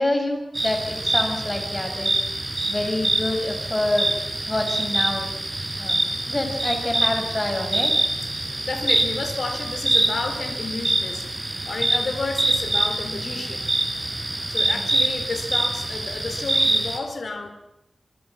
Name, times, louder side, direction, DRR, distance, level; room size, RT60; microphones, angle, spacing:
voice 1, 0.0-2.1 2.7-4.1 4.5-5.3 5.7-6.0 6.3-7.9 14.7-14.8, left 1 dB, 25° left, 4 dB, 6.5 m, -26 dB
sound 1, 0.5-17.0, right 2 dB, 30° right, 4.8 m, -25 dB
voice 2, 8.6-13.7 14.5-17.5, left 3 dB, 75° left, 6 dB, 4.1 m, -31 dB
26.5 x 25.0 x 5.9 m, 0.83 s
wide cardioid pair, 90°, 0 cm